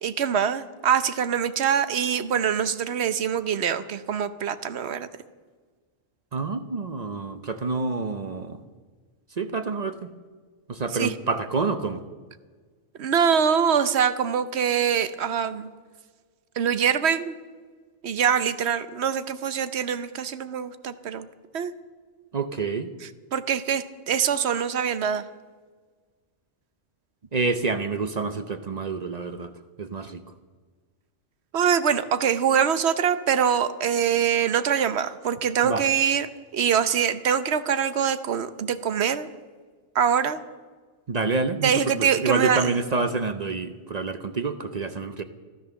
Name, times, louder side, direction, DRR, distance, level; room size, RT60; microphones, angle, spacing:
voice 1, 0.0-5.1 10.9-11.1 13.0-15.7 16.6-17.3 18.0-21.3 21.5-21.7 23.3-25.2 31.5-36.3 36.5-39.3 39.9-40.4 41.6-42.8, right 8 dB, 60° right, 13 dB, 1.0 m, -24 dB
voice 2, 6.3-8.6 9.4-10.1 10.7-12.0 22.3-22.9 27.3-29.5 29.8-30.2 35.6-35.8 41.1-45.2, right 4 dB, 40° right, 9 dB, 0.7 m, -28 dB
14.0 x 13.0 x 7.0 m, 1.5 s
omnidirectional pair, 1.3 m